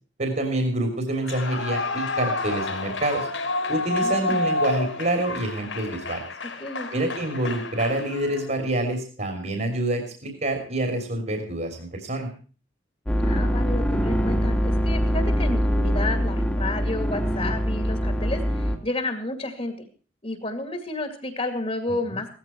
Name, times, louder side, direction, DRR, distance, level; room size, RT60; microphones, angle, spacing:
voice 1, 0.2-3.3 3.7-6.2 6.9-12.3 22.1-22.2, right 1 dB, 40° right, 5 dB, 3.3 m, -27 dB
Clapping / Cheering / Applause, 1.2-8.6, left 2 dB, 70° left, 4.1 m, -29 dB
voice 2, 4.0-4.4 6.6-7.1 13.2-19.7 20.2-22.4, left 2 dB, 30° left, 7 dB, 2.3 m, -31 dB
sound 1, 13.1-18.8, equal, 5° left, 1.9 m, -23 dB
17.0 x 14.0 x 4.5 m, 0.40 s
head